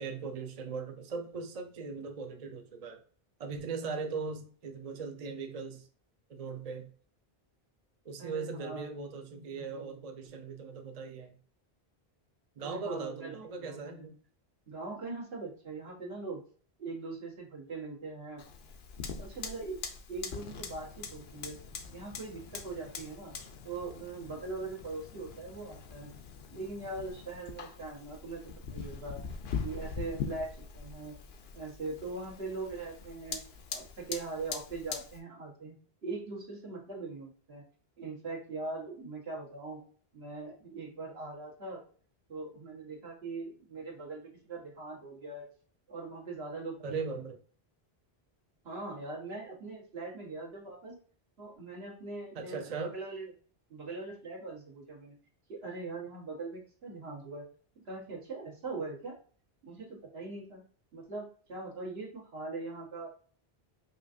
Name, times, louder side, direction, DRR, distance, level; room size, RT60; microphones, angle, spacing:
voice 1, 0.0-3.0 3.4-5.9 6.3-6.9 8.0-11.4 12.6-14.2 46.8-47.4 52.3-53.0, right 4 dB, 45° right, 0.5 m, -39 dB
voice 2, 8.2-8.9 12.6-14.0 14.7-16.4 16.8-18.4 19.2-19.8 20.1-21.6 21.9-23.3 23.6-26.1 26.5-28.4 28.7-29.2 29.6-31.1 31.5-33.4 33.7-35.7 36.0-37.6 38.0-39.8 40.1-41.8 42.3-45.5 45.9-47.2 48.6-50.9 51.4-53.3 53.7-55.1 55.5-57.4 57.8-59.1 59.6-60.6 60.9-63.1, right 3 dB, 75° right, 1.5 m, -41 dB
Fire, 18.4-35.2, left 6 dB, 75° left, 0.9 m, -43 dB
5.4 x 2.5 x 2.5 m
omnidirectional pair, 1.0 m